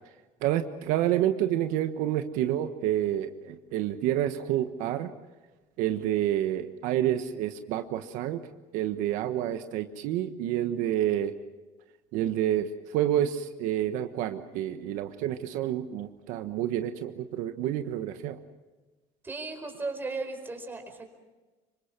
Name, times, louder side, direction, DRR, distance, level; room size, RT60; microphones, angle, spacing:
voice 1, 0.4-5.1 5.8-8.4 8.7-11.3 12.1-12.7 12.9-18.4, right 12 dB, 80° right, 8 dB, 1.3 m, -28 dB
voice 2, 19.2-21.2, right 3 dB, 15° right, 4 dB, 4.7 m, -36 dB
26.5 x 24.5 x 6.1 m, 1.2 s
cardioid pair, 135°, 13 cm